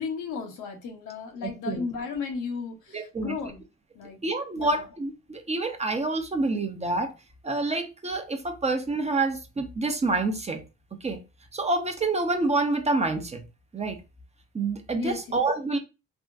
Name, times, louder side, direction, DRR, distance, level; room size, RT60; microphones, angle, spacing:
voice 1, 0.0-3.6 3.9-4.2 4.6-4.8 15.0-15.4, left 5 dB, 90° left, 0.9 m, -34 dB
voice 2, 1.4-1.8 2.9-3.4 4.2-7.1 7.4-10.6 11.0-11.2 11.5-13.4 13.7-14.0 14.5-15.8, right 3 dB, 20° right, 0.6 m, -27 dB
3.5 x 2.0 x 2.6 m
cardioid pair, 90°, 30 cm